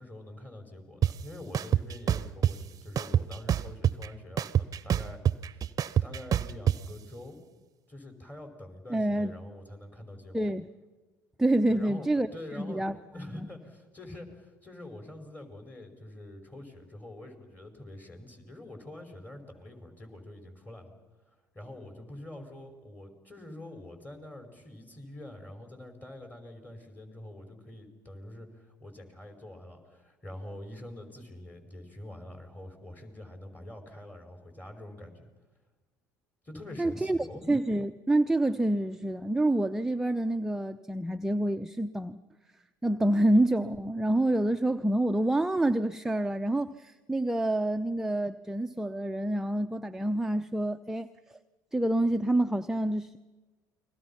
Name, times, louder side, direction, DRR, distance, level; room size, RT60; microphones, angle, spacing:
voice 1, 0.0-5.2 5.5-5.7 6.0-7.4 7.9-10.5 11.7-20.9 21.5-35.2 36.4-37.5, left 1 dB, 20° left, 5 dB, 5.6 m, -45 dB
sound 1, 1.0-1.1 1.5-2.5 3.0-4.1 4.4-6.8, right 9 dB, 40° right, 0.8 m, -25 dB
voice 2, 8.9-9.3 10.3-10.6 11.4-12.3 12.6-13.5 36.8-37.2 37.5-42.2 42.8-51.1 51.7-53.2, right 1 dB, 5° right, 8 dB, 0.7 m, -27 dB
29.5 x 22.0 x 5.9 m, 1.3 s
hypercardioid pair, 65°, 9 cm